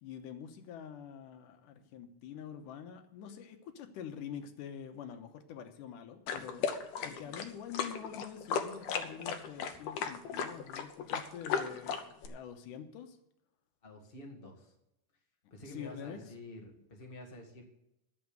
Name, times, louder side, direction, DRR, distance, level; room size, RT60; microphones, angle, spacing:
voice 1, 0.0-13.2 15.7-16.2, left 8 dB, 85° left, 7 dB, 2.5 m, -46 dB
sound 1, 6.3-12.3, left 7 dB, 70° left, 2.0 m, -35 dB
voice 2, 13.8-14.7 15.5-17.6, left 1 dB, 20° left, 1 dB, 1.6 m, -49 dB
12.0 x 7.1 x 7.9 m, 0.85 s
omnidirectional pair, 3.7 m